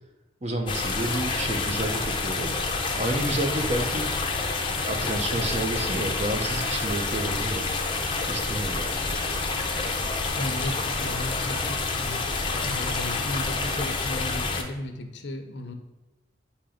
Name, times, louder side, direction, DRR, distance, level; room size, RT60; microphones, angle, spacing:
voice 1, 0.4-4.1 4.8-7.7 8.3-8.9, right 1 dB, 35° right, 3 dB, 0.8 m, -30 dB
sound 1, 0.7-14.6, left 3 dB, 25° left, 0.6 m, -28 dB
voice 2, 10.3-12.3 12.6-15.7, left 1 dB, 70° left, 6 dB, 0.7 m, -35 dB
8.6 x 3.0 x 5.0 m, 1.1 s
head